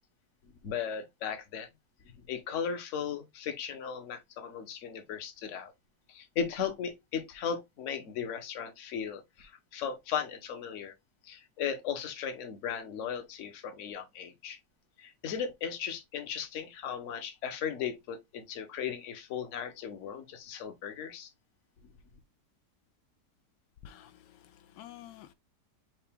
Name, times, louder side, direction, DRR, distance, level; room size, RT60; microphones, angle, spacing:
voice 1, 0.6-1.7 2.2-5.7 6.1-10.9 11.2-14.6 15.0-21.3, left 7 dB, 50° left, 1.1 m, -36 dB
voice 2, 23.8-25.3, left 11 dB, 85° left, 1.2 m, -50 dB
5.8 x 2.3 x 3.4 m
omnidirectional pair, 1.9 m